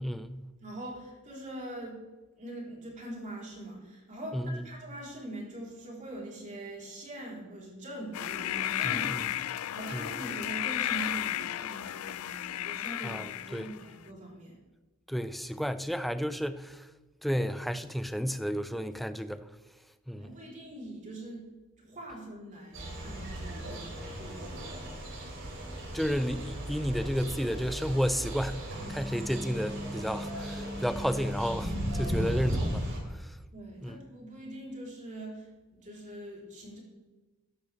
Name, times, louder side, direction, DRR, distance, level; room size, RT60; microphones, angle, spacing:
voice 1, 0.0-0.4 4.3-4.7 8.8-9.2 9.9-10.1 13.0-13.7 15.1-16.8 17.2-19.4 20.1-20.3 25.9-32.8 33.8-34.0, equal, ahead, 0.4 m, -32 dB
voice 2, 0.6-2.0 2.4-9.3 9.5-14.6 20.1-21.5 21.8-24.7 33.5-36.8, right 1 dB, 35° right, 4.0 m, -43 dB
sound 1, 8.1-13.9, left 12 dB, 75° left, 0.4 m, -33 dB
sound 2, 22.7-33.0, equal, 60° right, 3.8 m, -36 dB
14.5 x 11.0 x 3.5 m
head